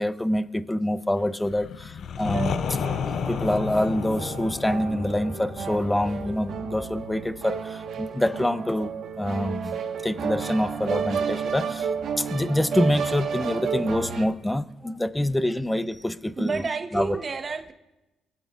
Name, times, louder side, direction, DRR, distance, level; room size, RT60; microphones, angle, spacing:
voice 1, 0.0-2.8 3.1-9.8 10.0-11.9 12.2-16.6 16.9-17.2, left 1 dB, 10° left, 13 dB, 0.5 m, -26 dB
sound 1, 1.4-7.2, left 7 dB, 60° left, 0.4 m, -32 dB
sound 2, 2.2-14.3, right 6 dB, 70° right, 1.3 m, -32 dB
voice 2, 16.4-17.7, right 4 dB, 40° right, 6 dB, 1.1 m, -30 dB
23.5 x 8.2 x 2.4 m, 0.98 s
cardioid pair, 90°, 0 cm